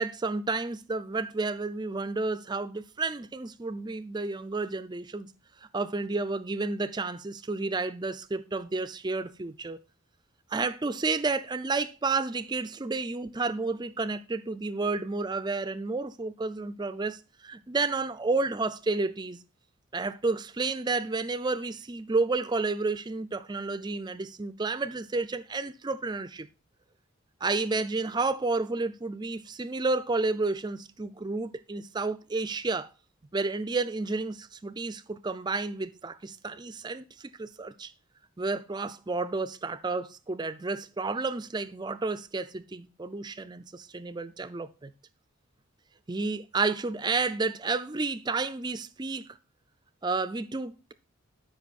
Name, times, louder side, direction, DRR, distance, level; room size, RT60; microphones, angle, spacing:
voice 1, 0.0-5.3 5.7-9.8 10.5-19.4 19.9-26.5 27.4-32.9 33.3-37.9 38.4-44.9 46.1-49.4 50.0-50.9, right 3 dB, 20° right, 0.4 m, -31 dB
12.5 x 5.3 x 4.2 m
head